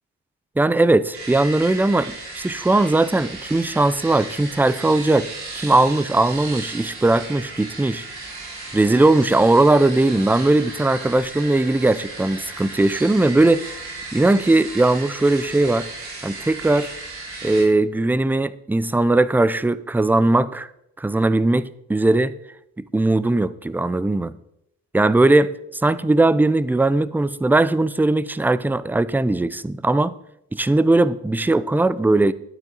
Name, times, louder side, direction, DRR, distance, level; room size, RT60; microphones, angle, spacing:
voice 1, 0.6-8.1 8.7-13.8 14.1-15.9 16.2-16.9 17.4-20.7 21.0-22.3 22.8-24.3 24.9-30.2 30.5-32.3, right 2 dB, 5° right, 0.4 m, -19 dB
sound 1, 1.1-17.6, right 3 dB, 80° right, 3.6 m, -35 dB
12.0 x 8.9 x 3.9 m
cardioid pair, 75°, 38 cm